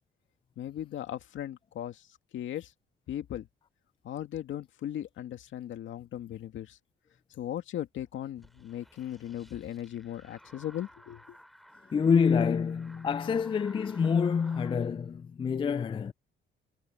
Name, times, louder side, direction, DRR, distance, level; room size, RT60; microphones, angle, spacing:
voice 1, 0.6-2.1 2.3-2.7 3.1-3.5 4.0-6.8 7.3-11.4, left 11 dB, 75° left, 2.2 m, -38 dB
sound 1, 8.4-14.8, equal, ahead, 3.5 m, -55 dB
voice 2, 11.9-16.1, left 6 dB, 25° left, 0.3 m, -27 dB
cardioid pair, 90°, 20 cm